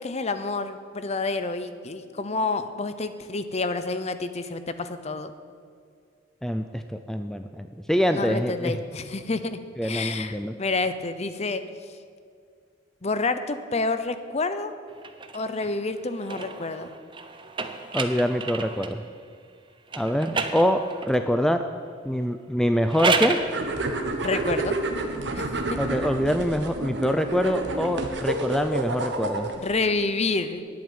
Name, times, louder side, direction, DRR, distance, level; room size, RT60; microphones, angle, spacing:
voice 1, 0.0-5.3 8.1-11.6 13.0-14.7 15.3-16.9 24.2-24.8 25.3-25.8 29.5-30.6, left 3 dB, 35° left, 11 dB, 0.7 m, -29 dB
voice 2, 6.4-8.8 9.8-10.5 17.9-19.0 20.0-21.6 22.0-23.4 25.8-29.5, equal, 5° left, 7 dB, 0.4 m, -25 dB
sound 1, 15.0-19.0 19.9-21.3 22.7-23.5, right 4 dB, 25° right, 0.8 m, -30 dB
sound 2, 23.5-29.7, right 2 dB, 70° right, 1.4 m, -29 dB
10.5 x 8.8 x 8.9 m, 2.2 s
head